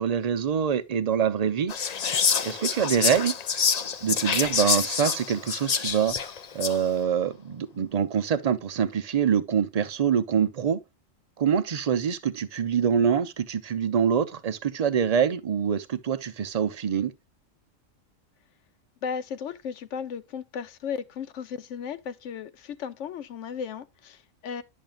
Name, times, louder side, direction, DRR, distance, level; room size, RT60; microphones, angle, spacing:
voice 1, 0.0-1.7 2.4-3.3 4.0-6.1 6.5-10.8 11.4-17.1, right 7 dB, 45° right, 0.5 m, -25 dB
Whispering, 1.7-6.9, left 6 dB, 45° left, 0.5 m, -27 dB
voice 2, 19.0-24.6, left 7 dB, 70° left, 1.0 m, -35 dB
10.5 x 6.4 x 2.4 m
omnidirectional pair, 1.3 m